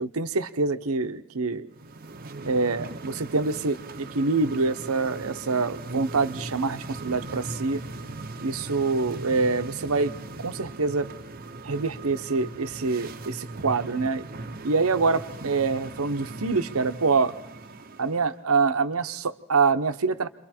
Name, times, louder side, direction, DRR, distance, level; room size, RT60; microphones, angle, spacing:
voice 1, 0.0-1.7 2.4-7.8 8.4-10.1 10.4-11.1 11.6-14.2 14.6-17.3 18.0-20.3, right 4 dB, 80° right, 11 dB, 0.9 m, -25 dB
sound 1, 1.7-18.3, right 2 dB, 40° right, 0.8 m, -39 dB
29.5 x 24.0 x 4.4 m, 0.87 s
head